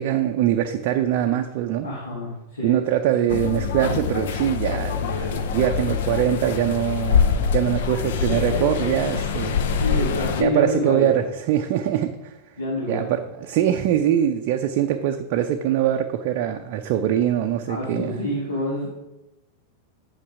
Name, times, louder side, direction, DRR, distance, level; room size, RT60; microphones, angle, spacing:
voice 1, 0.0-1.9 2.6-9.6 10.4-12.4 12.9-18.2, right 11 dB, 45° right, 5 dB, 0.5 m, -23 dB
voice 2, 1.8-2.8 8.3-11.2 12.6-13.1 17.7-18.9, left 1 dB, 70° left, -5 dB, 1.9 m, -28 dB
sound 1, 3.3-10.4, left 6 dB, 55° left, 0.7 m, -24 dB
8.5 x 5.8 x 4.7 m, 0.96 s
figure-of-eight pair, 90°, 0 cm